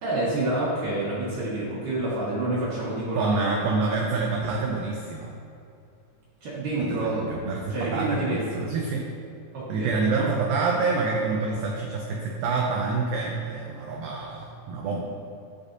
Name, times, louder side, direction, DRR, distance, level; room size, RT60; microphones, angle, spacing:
voice 1, 0.0-3.6 6.4-7.3 7.7-8.6 9.5-10.3 14.9-15.0, right 2 dB, 65° right, -9 dB, 2.8 m, -28 dB
voice 2, 3.1-5.3 6.8-9.1 9.7-15.0, right 4 dB, 80° right, -1 dB, 2.1 m, -27 dB
12.0 x 5.2 x 2.6 m, 2.4 s
omnidirectional pair, 4.7 m